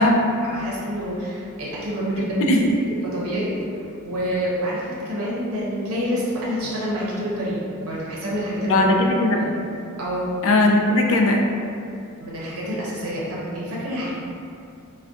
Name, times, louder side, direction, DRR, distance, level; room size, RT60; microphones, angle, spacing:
voice 1, 0.4-3.8 4.0-8.9 9.2-9.5 10.0-10.3 12.2-14.1, equal, 80° right, -5 dB, 0.7 m, -27 dB
voice 2, 2.2-2.6 8.7-9.5 10.4-11.4, left 2 dB, 65° left, 1 dB, 0.4 m, -18 dB
2.5 x 2.2 x 3.5 m, 2.5 s
head